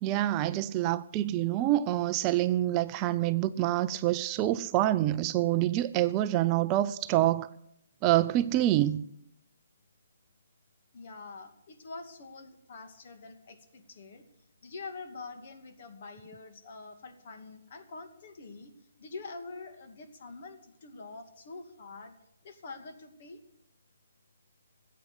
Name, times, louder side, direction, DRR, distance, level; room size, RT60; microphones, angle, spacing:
voice 1, 0.0-7.5 8.0-9.0, right 14 dB, 25° right, 0.5 m, -26 dB
voice 2, 10.9-14.2 14.6-18.7 19.0-22.1 22.4-23.4, left 3 dB, 50° left, 2.4 m, -45 dB
14.5 x 8.5 x 9.8 m
hypercardioid pair, 155°, 0 cm